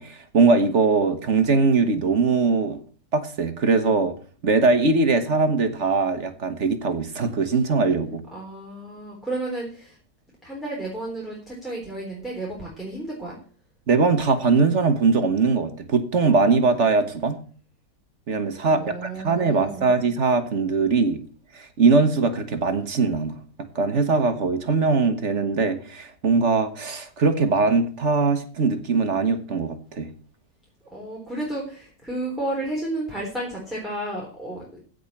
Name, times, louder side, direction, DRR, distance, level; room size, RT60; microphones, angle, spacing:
voice 1, 0.0-2.8 3.1-4.1 4.4-8.2 13.9-17.4 18.3-21.2 21.5-23.4 23.7-30.1, right 4 dB, 45° right, 9 dB, 1.4 m, -21 dB
voice 2, 8.3-10.0 10.4-13.4 18.7-19.8 30.9-34.8, right 1 dB, ahead, -4 dB, 3.6 m, -32 dB
15.5 x 5.3 x 7.1 m, 0.43 s
omnidirectional pair, 1.9 m